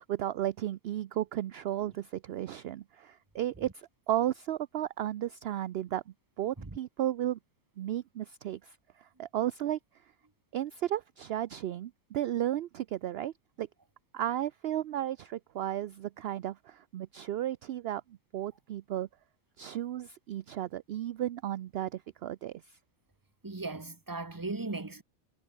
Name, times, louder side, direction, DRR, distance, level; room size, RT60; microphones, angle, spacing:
voice 1, 0.0-6.0 6.4-7.4 7.8-10.0 10.5-13.7 14.1-18.0 18.3-19.1 19.6-22.8, right 12 dB, 65° right, 0.6 m, -34 dB
voice 2, 23.4-25.0, right 3 dB, 15° right, 1.3 m, -37 dB
omnidirectional pair, 1.5 m